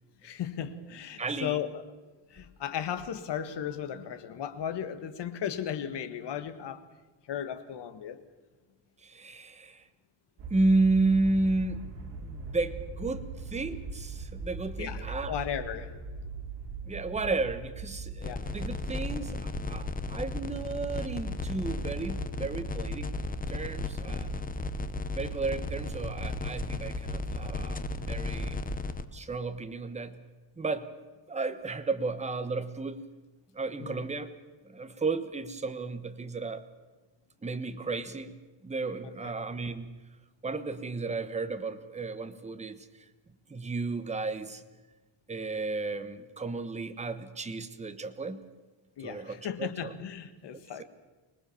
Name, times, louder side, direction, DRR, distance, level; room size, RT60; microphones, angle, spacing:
voice 1, 0.2-1.8 2.3-6.8 7.3-8.2 14.8-15.9 18.2-18.4 24.1-24.2 33.8-34.1 39.0-39.3 49.0-50.8, left 9 dB, 60° left, 10 dB, 1.8 m, -36 dB
voice 2, 1.2-1.6 9.0-9.8 10.5-11.8 12.2-15.3 16.9-23.1 23.5-24.4 25.1-28.6 29.1-30.2 30.6-30.9 31.3-33.0 33.5-34.3 34.6-36.6 37.4-38.3 38.6-39.9 40.4-42.8 43.5-44.6 45.3-48.4 49.0-49.9, right 3 dB, 15° right, 9 dB, 1.2 m, -32 dB
sound 1, 10.4-28.8, right 4 dB, 60° right, 5.0 m, -40 dB
sound 2, 18.2-29.1, left 5 dB, 20° left, 0.9 m, -36 dB
25.5 x 19.5 x 7.1 m, 1.2 s
cardioid pair, 160°, 47 cm